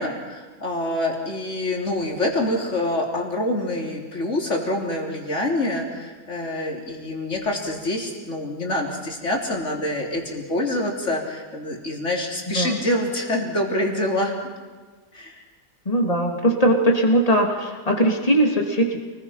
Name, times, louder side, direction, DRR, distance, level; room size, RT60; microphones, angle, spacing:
voice 1, 0.0-14.3 15.1-15.4, left 1 dB, 45° left, 0 dB, 4.0 m, -26 dB
voice 2, 15.9-19.0, right 1 dB, 20° left, 1 dB, 3.0 m, -20 dB
29.0 x 21.0 x 5.9 m, 1.4 s
omnidirectional pair, 1.8 m